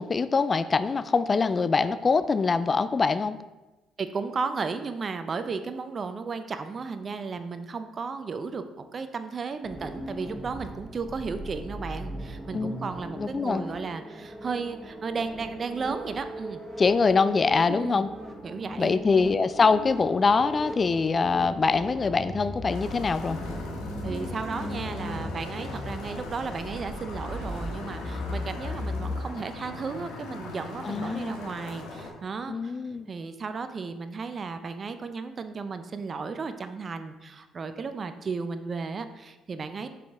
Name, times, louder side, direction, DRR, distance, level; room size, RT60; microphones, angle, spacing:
voice 1, 0.0-3.4 12.5-12.8 13.2-13.6 16.8-18.1 18.8-23.4 30.8-31.4 32.5-33.1, left 4 dB, 40° left, 13 dB, 0.3 m, -24 dB
voice 2, 4.0-16.6 17.7-18.1 18.4-19.0 24.0-32.8 33.1-39.9, right 4 dB, 45° right, 9 dB, 0.5 m, -34 dB
sound 1, 9.6-29.1, equal, 10° right, 1.2 m, -38 dB
sound 2, 22.7-32.1, left 2 dB, 85° left, 1.3 m, -40 dB
6.9 x 4.9 x 3.5 m, 1.1 s
supercardioid pair, 60°, 0 cm